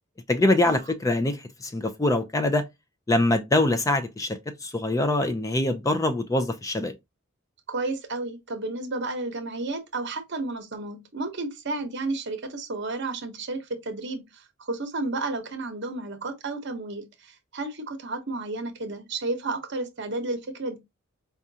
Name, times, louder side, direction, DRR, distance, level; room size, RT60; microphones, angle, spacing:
voice 1, 0.3-2.6 3.1-6.9, left 2 dB, 15° left, 0.4 m, -24 dB
voice 2, 7.7-20.8, right 2 dB, 60° right, 0.9 m, -32 dB
4.9 x 2.3 x 2.7 m
head